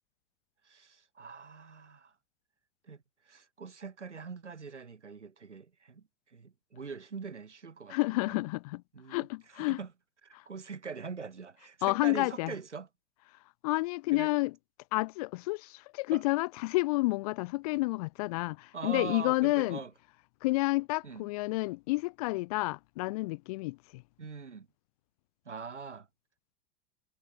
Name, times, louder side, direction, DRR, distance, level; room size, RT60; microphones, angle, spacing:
voice 1, 0.7-2.1 2.8-6.0 6.3-8.4 8.9-9.3 9.5-9.9 10.2-12.9 14.1-14.3 16.1-16.2 18.7-19.9 21.0-21.2 24.2-24.7 25.5-26.1, right 5 dB, 90° right, 0.6 m, -43 dB
voice 2, 7.9-8.8 9.1-9.8 11.8-12.5 13.6-14.5 14.9-19.8 20.4-24.0, left 22 dB, 35° left, 0.5 m, -30 dB
figure-of-eight pair, 95°, 34 cm